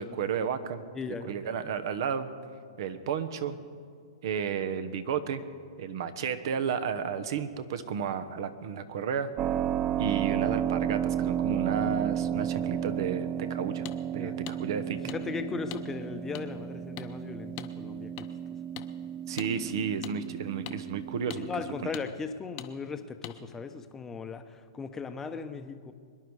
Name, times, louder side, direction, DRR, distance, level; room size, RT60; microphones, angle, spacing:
voice 1, 0.0-0.8 1.2-2.3 2.8-3.6 4.2-5.4 5.8-9.3 10.0-13.9 14.1-15.1 19.3-21.5 21.8-21.9, right 7 dB, 60° right, 11 dB, 1.1 m, -32 dB
voice 2, 0.9-1.3 14.2-14.4 15.0-18.3 21.3-25.9, left 5 dB, 15° left, 8 dB, 0.8 m, -37 dB
Keyboard (musical), 9.4-21.9, right 9 dB, 30° right, 0.3 m, -33 dB
sound 1, 13.9-14.0 14.5-14.6 15.1-15.2 15.7-15.8 16.3-16.4 17.0-17.1 17.6-17.7 18.2-18.3 18.8-18.9 19.4-19.5 20.0-20.1 20.7-20.8 21.3-21.4 21.9-22.1 22.6-22.7 23.2-23.4, left 17 dB, 40° left, 0.8 m, -41 dB
23.5 x 10.5 x 4.8 m, 2.2 s
hypercardioid pair, 130°, 3 cm